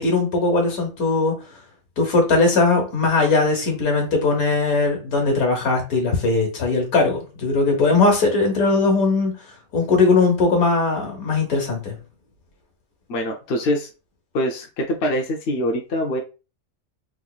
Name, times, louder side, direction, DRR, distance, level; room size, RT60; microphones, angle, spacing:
voice 1, 0.0-1.4 2.0-9.4 9.7-12.0, left 3 dB, 85° left, 2 dB, 1.6 m, -19 dB
voice 2, 13.1-13.9 14.3-16.2, equal, 60° left, 1 dB, 0.7 m, -24 dB
3.5 x 3.0 x 2.3 m, 0.31 s
omnidirectional pair, 1.5 m